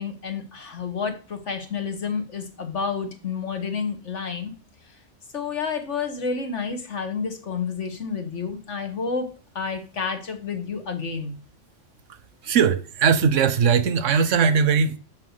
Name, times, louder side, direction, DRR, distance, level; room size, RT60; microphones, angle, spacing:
voice 1, 0.0-4.5 5.3-9.3 9.6-11.4, left 5 dB, 75° left, 1.9 m, -30 dB
voice 2, 12.4-15.0, right 6 dB, 90° right, 1.2 m, -19 dB
7.6 x 5.9 x 6.6 m
omnidirectional pair, 1.2 m